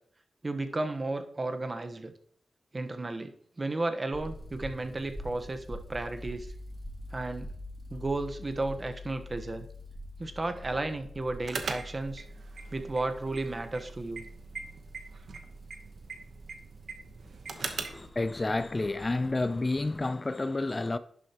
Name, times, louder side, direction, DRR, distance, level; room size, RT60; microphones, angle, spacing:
voice 1, 0.4-2.1 2.7-3.3 3.6-6.5 7.1-7.5 7.9-9.7 10.2-12.2 12.7-14.3, right 2 dB, 40° right, 1.1 m, -33 dB
sound 1, 4.1-20.0, equal, 5° right, 2.5 m, -46 dB
sound 2, 11.4-18.1, right 4 dB, 80° right, 1.0 m, -41 dB
voice 2, 17.5-21.0, left 2 dB, 35° left, 0.5 m, -30 dB
10.5 x 6.4 x 2.9 m
cardioid pair, 45°, 0 cm